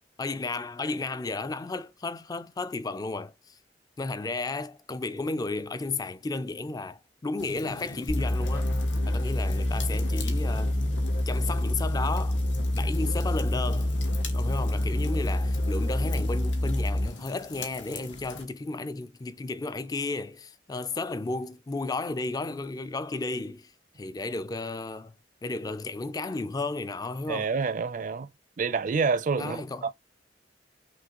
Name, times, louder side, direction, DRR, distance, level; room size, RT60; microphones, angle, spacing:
voice 1, 0.2-3.6 4.0-8.7 9.1-10.8 11.3-12.4 12.7-13.9 14.3-25.1 25.4-27.5 29.4-29.9, left 3 dB, 20° left, 0.3 m, -33 dB
sound 1, 7.4-18.4, left 3 dB, 80° left, 1.3 m, -43 dB
sound 2, 8.1-17.2, left 1 dB, 65° left, 1.0 m, -27 dB
voice 2, 27.3-28.3 28.6-29.6, right 4 dB, 45° right, 0.4 m, -27 dB
5.9 x 2.5 x 2.9 m
head